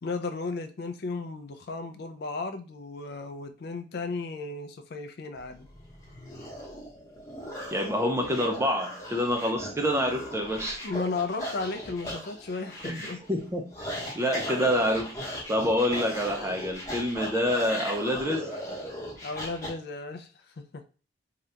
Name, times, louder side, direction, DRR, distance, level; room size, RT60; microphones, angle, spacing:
voice 1, 0.0-5.7 10.8-13.2 19.2-20.3 20.6-20.8, left 3 dB, 55° left, 0.4 m, -34 dB
sound 1, 5.4-19.7, equal, 15° left, 0.9 m, -38 dB
voice 2, 7.7-10.8 12.8-15.2 15.5-18.5, equal, 15° right, 0.4 m, -27 dB
2.8 x 2.3 x 3.3 m
head